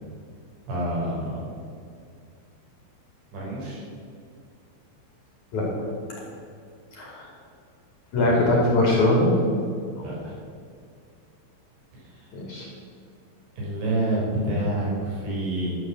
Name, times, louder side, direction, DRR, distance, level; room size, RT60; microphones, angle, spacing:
voice 1, 0.7-1.6 3.3-3.8 8.2-8.3 10.0-10.4 11.9-12.3 13.6-15.8, right 1 dB, 70° right, -5 dB, 7.0 m, -28 dB
voice 2, 5.5-5.9 6.9-7.3 8.1-9.4 10.0-10.1 12.3-12.7, left 1 dB, 45° left, -2 dB, 3.6 m, -22 dB
13.5 x 9.2 x 7.6 m, 2.4 s
omnidirectional pair, 5.4 m